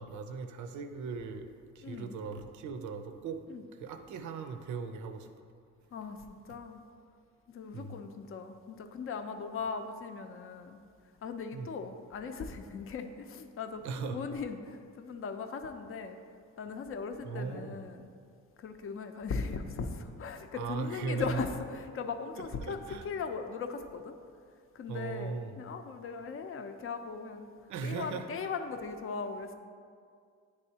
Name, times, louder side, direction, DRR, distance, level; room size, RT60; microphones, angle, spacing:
voice 1, 0.0-1.5 1.7-3.4 3.7-5.3 6.5-6.6 7.7-8.0 11.5-11.7 13.8-14.2 17.2-17.8 20.5-21.4 22.7-23.1 24.9-25.6 27.7-28.3, right 5 dB, 75° right, 7 dB, 0.6 m, -38 dB
voice 2, 1.8-2.1 3.5-3.6 5.9-6.8 7.5-10.8 11.2-16.2 16.6-18.1 18.6-24.2 24.7-27.5 27.8-29.5, left 5 dB, 45° left, 7 dB, 0.5 m, -39 dB
9.8 x 3.4 x 2.8 m, 2.2 s
cardioid pair, 90°, 30 cm